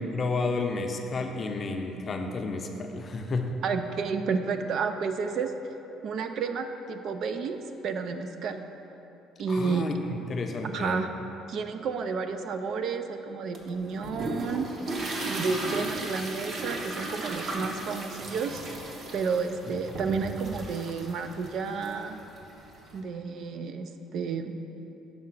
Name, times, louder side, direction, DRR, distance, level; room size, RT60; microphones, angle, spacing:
voice 1, 0.0-3.6 9.5-11.0, left 3 dB, 40° left, 4 dB, 0.6 m, -31 dB
voice 2, 3.6-5.5 6.0-7.6 7.8-8.6 9.4-9.9 10.6-11.1 11.5-14.7 15.2-18.6 19.1-22.2 22.9-24.5, right 5 dB, 60° right, 7 dB, 0.4 m, -31 dB
sound 1, 13.5-23.0, right 2 dB, 45° right, 0.8 m, -36 dB
5.7 x 3.7 x 6.0 m, 3.0 s
supercardioid pair, 90°, 0 cm